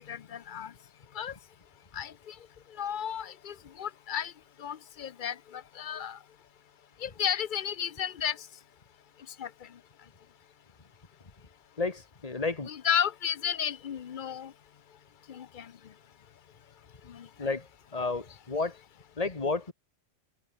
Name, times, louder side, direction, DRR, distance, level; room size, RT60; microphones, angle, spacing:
voice 1, 0.1-0.7 1.1-1.3 1.9-2.3 2.8-4.3 4.6-6.2 7.0-8.4 9.4-9.5 12.7-14.5 15.3-15.7 17.1-17.3, left 9 dB, 50° left, 0.7 m, -33 dB
voice 2, 11.8-12.7 17.4-18.8 19.2-19.7, left 3 dB, 30° left, 1.8 m, -32 dB
omnidirectional pair, 1.3 m